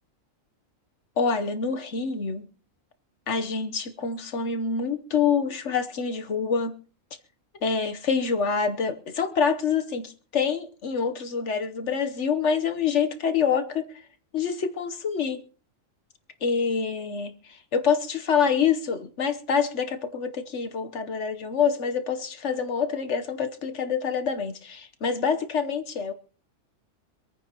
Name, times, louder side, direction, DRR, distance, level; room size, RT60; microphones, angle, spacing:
voice 1, 1.2-2.5 3.3-6.7 7.6-14.0 14.3-15.4 16.4-26.1, left 6 dB, 60° left, 1.2 m, -26 dB
26.0 x 9.6 x 2.9 m
omnidirectional pair, 1.4 m